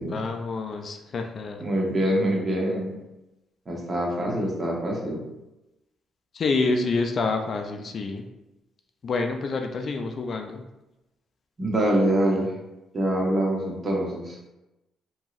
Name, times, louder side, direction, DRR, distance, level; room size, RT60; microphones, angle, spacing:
voice 1, 0.0-1.7 6.3-8.3 9.0-10.6, left 3 dB, 50° left, 4 dB, 0.3 m, -27 dB
voice 2, 1.6-2.9 3.7-5.2 11.6-12.5 12.9-14.4, right 1 dB, 35° right, -2 dB, 0.8 m, -25 dB
2.9 x 2.6 x 2.4 m, 0.96 s
cardioid pair, 90°, 0 cm